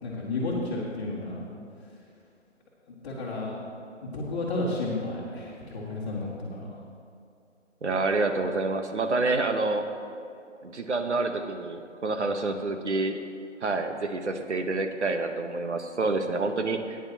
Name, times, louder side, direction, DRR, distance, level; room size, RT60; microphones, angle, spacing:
voice 1, 0.0-1.4 2.9-3.6 4.0-6.7, left 2 dB, 25° left, -12 dB, 1.9 m, -32 dB
voice 2, 7.8-9.9 10.6-13.2 13.6-17.0, right 3 dB, 65° right, 6 dB, 1.1 m, -28 dB
17.0 x 9.9 x 2.9 m, 2.5 s
figure-of-eight pair, 145°, 37 cm